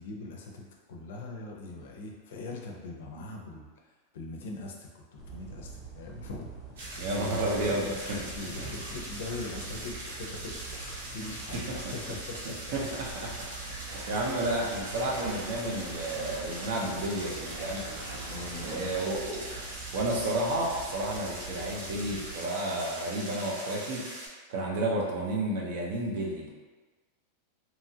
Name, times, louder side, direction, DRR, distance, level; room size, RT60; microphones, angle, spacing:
voice 1, 0.0-3.7 4.1-6.5 6.8-12.9 13.6-13.7 14.6-14.9 18.3-18.9, left 2 dB, 70° left, 0 dB, 0.5 m, -42 dB
sound 1, 5.2-22.3, right 5 dB, 5° right, 0.4 m, -45 dB
sound 2, 6.8-24.3, right 1 dB, 90° right, 0.8 m, -41 dB
voice 2, 7.0-7.9 8.6-8.7 11.5-11.9 12.7-17.8 18.6-19.5 19.9-24.1 24.5-26.5, right 1 dB, 50° right, -2 dB, 0.6 m, -31 dB
sound 3, 13.9-19.0, right 1 dB, 70° right, 1.1 m, -45 dB
2.9 x 2.4 x 2.7 m, 1.4 s
supercardioid pair, 175°, 0 cm